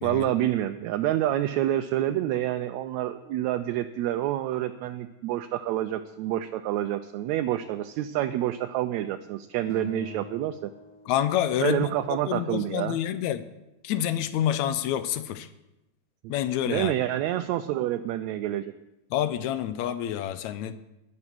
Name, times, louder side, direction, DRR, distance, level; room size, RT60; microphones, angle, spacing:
voice 1, 0.0-10.7 11.6-13.0 16.2-16.3 16.6-18.7, right 13 dB, 80° right, 8 dB, 1.8 m, -28 dB
Acoustic guitar, 9.7-12.1, left 3 dB, 45° left, 4.7 m, -45 dB
voice 2, 11.1-11.9 12.3-13.5 13.8-15.5 16.3-16.9 19.1-20.7, left 11 dB, 80° left, 12 dB, 2.0 m, -27 dB
19.5 x 6.6 x 6.1 m, 0.96 s
omnidirectional pair, 3.3 m